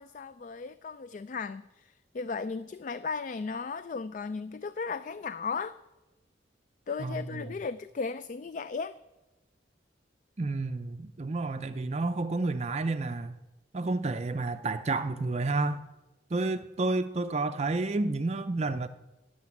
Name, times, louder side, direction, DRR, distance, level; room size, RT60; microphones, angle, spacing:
voice 1, 0.0-5.8 6.9-9.0, left 4 dB, 45° left, 0.3 m, -36 dB
voice 2, 10.4-13.3 13.7-15.8 16.3-18.9, right 3 dB, 35° right, 0.5 m, -30 dB
11.5 x 7.9 x 9.6 m
head